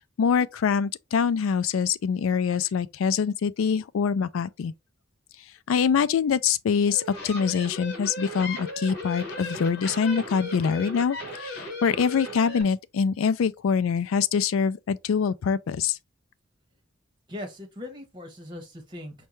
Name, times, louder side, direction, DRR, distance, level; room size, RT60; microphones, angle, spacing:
voice 1, 0.2-4.7 5.7-16.0, left 6 dB, 80° left, 0.4 m, -24 dB
sound 1, 6.9-12.6, left 1 dB, 55° left, 1.3 m, -36 dB
voice 2, 17.3-19.3, left 1 dB, 20° right, 1.1 m, -39 dB
5.4 x 2.3 x 3.0 m
head